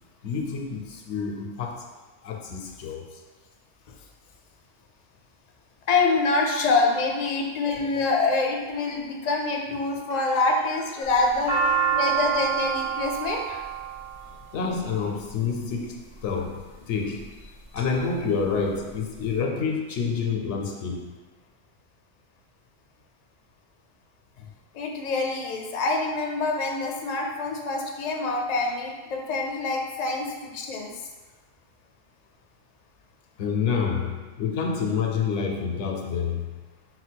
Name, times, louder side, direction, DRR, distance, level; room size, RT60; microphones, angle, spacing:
voice 1, 0.2-1.9 2.2-3.1 10.1-10.2 11.0-11.1 11.7-11.9 14.5-21.1 33.4-36.5, left 5 dB, 85° left, 0.9 m, -28 dB
voice 2, 5.9-11.6 11.9-13.6 24.7-30.9, left 3 dB, 50° left, 0.5 m, -26 dB
sound 1, 11.0-15.3 16.1-16.6 17.2-17.8 18.2-18.3 18.4-19.3, right 7 dB, 70° right, 1.4 m, -27 dB
4.0 x 2.2 x 4.4 m
omnidirectional pair, 1.2 m